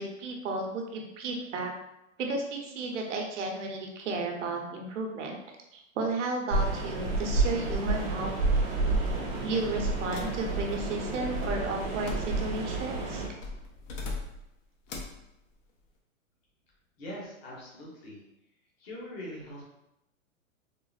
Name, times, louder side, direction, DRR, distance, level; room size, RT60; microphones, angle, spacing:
voice 1, 0.0-1.7 2.2-5.4 5.7-8.3 9.4-13.2, right 3 dB, 65° right, 2 dB, 0.8 m, -33 dB
sound 1, 6.5-13.3, right 3 dB, 30° right, 0.5 m, -30 dB
sound 2, 10.1-12.7 13.4-14.5 14.9-15.2, left 2 dB, 70° left, 0.8 m, -39 dB
voice 2, 17.0-18.2 18.8-19.6, left 1 dB, 45° left, -5 dB, 1.1 m, -42 dB
3.7 x 2.0 x 2.4 m, 0.87 s
hypercardioid pair, 160°, 40 cm